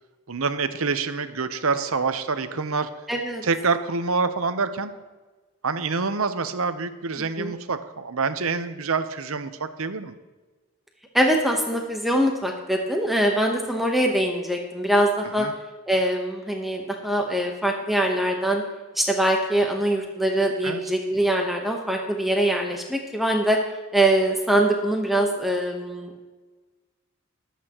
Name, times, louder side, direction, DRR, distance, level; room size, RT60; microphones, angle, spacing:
voice 1, 0.3-2.9 3.4-4.9 5.6-10.2 15.4-15.5 20.6-20.8, right 4 dB, 70° right, 10 dB, 0.8 m, -26 dB
voice 2, 3.1-3.4 7.4-7.5 11.1-15.5 15.9-18.6 18.9-23.6 23.9-26.2, right 1 dB, ahead, 1 dB, 1.0 m, -23 dB
22.0 x 8.4 x 3.0 m, 1.3 s
head